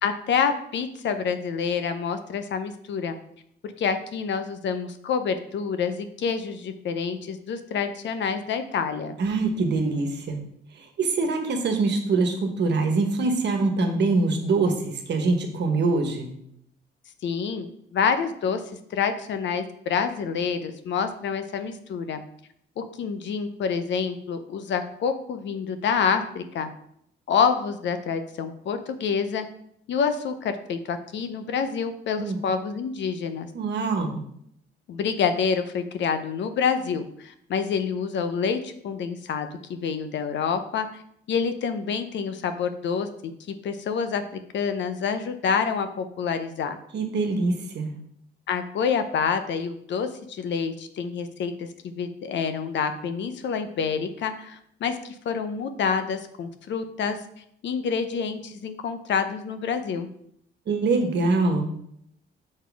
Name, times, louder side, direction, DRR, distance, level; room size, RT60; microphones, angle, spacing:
voice 1, 0.0-3.2 3.6-9.2 17.2-18.6 18.9-22.2 22.8-26.7 27.3-29.5 29.9-33.5 34.9-41.0 41.3-43.1 43.6-44.2 44.5-46.8 48.5-57.2 57.6-60.1, left 6 dB, 65° left, 9 dB, 0.7 m, -27 dB
voice 2, 9.2-10.4 10.7-16.3 32.2-32.4 33.5-34.2 46.9-47.9 60.7-61.7, right 3 dB, 60° right, 5 dB, 1.3 m, -24 dB
6.5 x 4.0 x 4.7 m, 0.70 s
cardioid pair, 90°, 20 cm